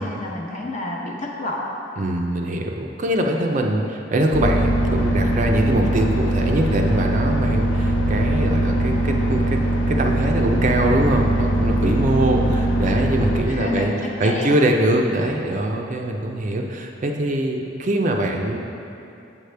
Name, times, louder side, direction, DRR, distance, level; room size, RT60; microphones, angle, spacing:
voice 1, 0.0-1.6 13.5-13.9 14.2-14.5, left 2 dB, 40° left, -1 dB, 0.8 m, -28 dB
voice 2, 2.0-9.6 9.9-13.9 14.2-18.6, right 1 dB, 40° right, 2 dB, 0.5 m, -22 dB
sound 1, 4.3-13.4, right 1 dB, 75° left, 0.6 m, -21 dB
7.2 x 6.5 x 3.3 m, 2.7 s
head